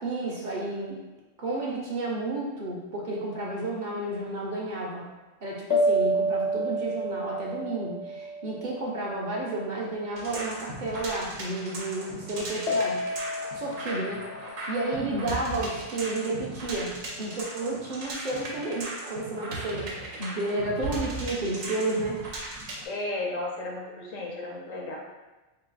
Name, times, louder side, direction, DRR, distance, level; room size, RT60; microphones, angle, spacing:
voice 1, 0.0-1.0 1.4-5.0 5.4-13.0 13.6-14.2 14.7-16.9 17.2-19.9 20.2-22.2, right 2 dB, 45° right, -3 dB, 0.7 m, -31 dB
sound 1, 5.7-9.2 12.7-15.7, right 1 dB, 65° left, 0.8 m, -30 dB
sound 2, 10.1-22.8, right 2 dB, 80° right, 1.2 m, -37 dB
voice 2, 22.8-25.0, left 2 dB, 85° left, -2 dB, 1.2 m, -34 dB
3.8 x 2.4 x 3.9 m, 1.1 s
omnidirectional pair, 1.3 m